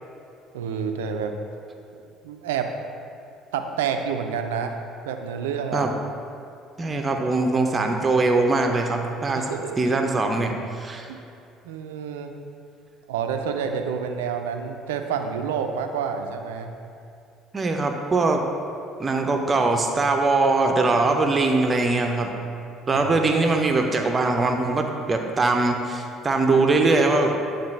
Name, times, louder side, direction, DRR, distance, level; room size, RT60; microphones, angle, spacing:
voice 1, 0.5-1.4 1.9-2.7 3.5-4.8 5.0-5.9 9.3-9.8 11.1-11.2 11.6-12.3 13.1-16.7 22.9-23.2, right 7 dB, 70° right, 5 dB, 0.4 m, -29 dB
voice 2, 6.8-9.4 9.8-11.1 17.5-18.4 19.0-22.3 22.9-27.4, right 3 dB, 30° right, 3 dB, 0.6 m, -22 dB
9.4 x 4.0 x 3.2 m, 2.6 s
figure-of-eight pair, 55°, 0 cm